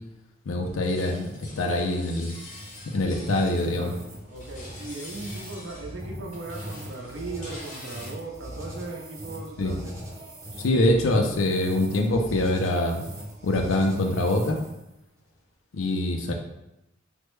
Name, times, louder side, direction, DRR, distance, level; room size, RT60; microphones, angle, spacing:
voice 1, 0.5-2.4 2.9-3.9 9.6-9.7 10.6-13.0 13.4-14.6 15.7-16.3, left 1 dB, 85° left, 3 dB, 0.5 m, -24 dB
sound 1, 0.7-4.0 4.3-6.0 6.3-8.1, left 2 dB, 40° left, 0.6 m, -46 dB
sound 2, 1.0-14.9, equal, 15° right, 0.6 m, -41 dB
voice 2, 3.4-9.9, right 3 dB, 70° right, 0 dB, 0.6 m, -38 dB
3.3 x 2.1 x 3.1 m, 0.88 s
head